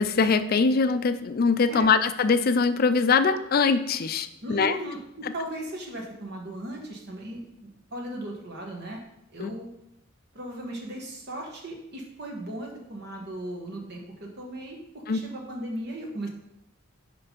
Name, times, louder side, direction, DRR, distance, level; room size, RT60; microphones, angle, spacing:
voice 1, 0.0-4.8 9.4-9.5 15.1-15.2, left 4 dB, 50° left, 12 dB, 0.4 m, -22 dB
voice 2, 1.6-1.9 4.4-9.0 9.3-9.7 10.3-16.3, right 1 dB, 55° right, 0 dB, 1.3 m, -37 dB
5.6 x 5.3 x 5.2 m, 0.81 s
head